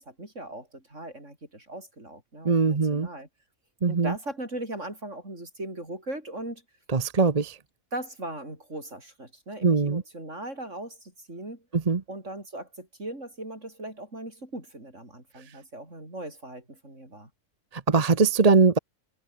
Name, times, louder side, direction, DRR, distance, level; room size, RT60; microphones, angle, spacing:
voice 1, 0.0-3.3 3.9-6.6 7.9-11.6 12.1-17.3, right 1 dB, 50° right, 8.1 m, -39 dB
voice 2, 2.4-3.1 3.8-4.1 6.9-7.6 9.6-10.0 11.7-12.0 17.7-18.8, right 4 dB, 30° right, 0.9 m, -21 dB
omnidirectional pair, 1.6 m